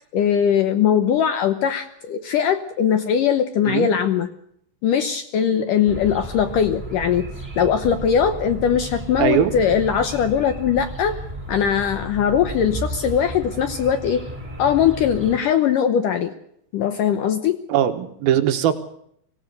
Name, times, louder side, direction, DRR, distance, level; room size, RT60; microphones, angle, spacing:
voice 1, 0.1-4.3 4.8-7.3 7.6-11.2 11.5-14.2 14.6-16.3 16.7-17.6, left 8 dB, 70° left, 9 dB, 2.1 m, -20 dB
sound 1, 5.9-15.4, right 1 dB, 15° right, 7.1 m, -34 dB
voice 2, 9.2-9.5 17.7-18.7, right 10 dB, 70° right, 8 dB, 2.8 m, -20 dB
25.0 x 16.0 x 6.6 m, 0.70 s
omnidirectional pair, 4.8 m